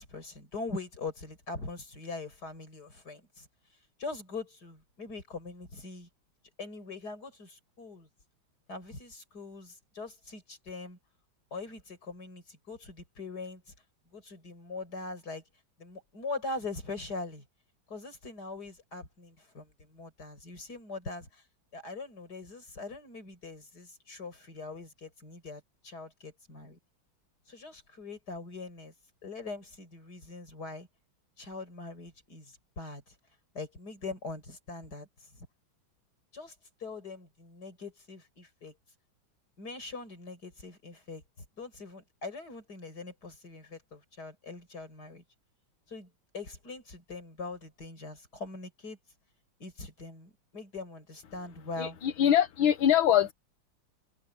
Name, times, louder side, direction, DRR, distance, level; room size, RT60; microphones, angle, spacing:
voice 1, 0.0-3.5 4.0-6.1 6.6-8.1 8.7-11.0 11.5-13.6 14.1-15.4 15.8-17.4 17.9-21.4 21.7-26.8 27.5-28.9 29.2-30.9 31.4-33.1 33.5-35.5 36.3-36.5 36.8-38.7 39.6-45.2 45.9-49.0 49.6-52.0, left 3 dB, 50° left, 6.5 m, -42 dB
voice 2, 51.8-53.3, left 10 dB, 80° left, 2.0 m, -23 dB
omnidirectional pair, 2.2 m